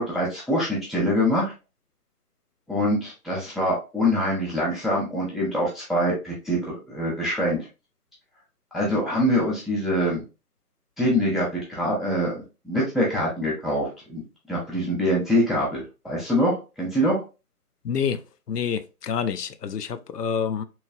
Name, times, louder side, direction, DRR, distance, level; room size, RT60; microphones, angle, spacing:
voice 1, 0.0-1.5 2.7-6.6 6.9-7.6 8.7-10.2 11.0-14.2 14.5-17.2, equal, ahead, 0.5 m, -24 dB
voice 2, 17.8-18.2 18.5-20.6, left 7 dB, 90° left, 0.5 m, -27 dB
3.0 x 2.7 x 2.5 m
figure-of-eight pair, 165°, 46 cm